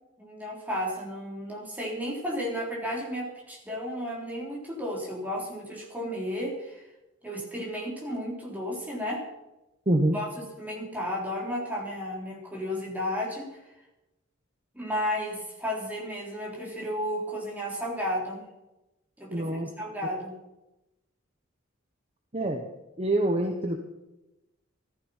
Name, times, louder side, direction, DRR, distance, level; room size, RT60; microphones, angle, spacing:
voice 1, 0.2-6.9 7.2-9.2 10.1-13.6 14.7-18.5 19.2-20.3, equal, 10° right, -3 dB, 3.7 m, -33 dB
voice 2, 9.9-10.2 19.3-19.7 22.3-22.7 23.0-23.8, right 1 dB, 30° right, 4 dB, 1.2 m, -25 dB
14.5 x 14.0 x 5.7 m, 0.97 s
head